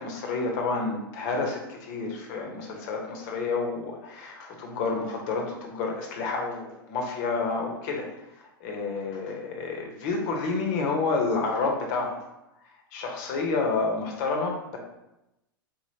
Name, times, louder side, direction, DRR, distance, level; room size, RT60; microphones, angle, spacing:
voice 1, 0.0-8.1 8.4-12.2 12.9-14.8, left 4 dB, 50° left, 1 dB, 1.0 m, -29 dB
4.3 x 3.1 x 2.8 m, 0.91 s
hypercardioid pair, 95°, 12 cm